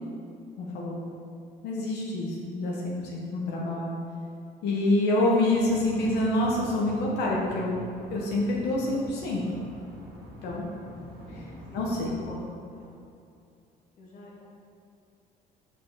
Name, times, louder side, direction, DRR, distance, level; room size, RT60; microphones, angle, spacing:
voice 1, 0.6-1.0 1.6-3.9 4.6-7.7 8.1-9.4 10.4-10.7 11.7-12.2, left 1 dB, 80° left, -4 dB, 1.2 m, -26 dB
sound 1, 5.5-12.2, left 1 dB, 70° right, 1.6 m, -45 dB
voice 2, 11.3-11.8 12.3-13.0 14.0-14.4, left 1 dB, 55° left, -4 dB, 1.6 m, -47 dB
5.6 x 4.5 x 5.6 m, 2.6 s
cardioid pair, 110°, 17 cm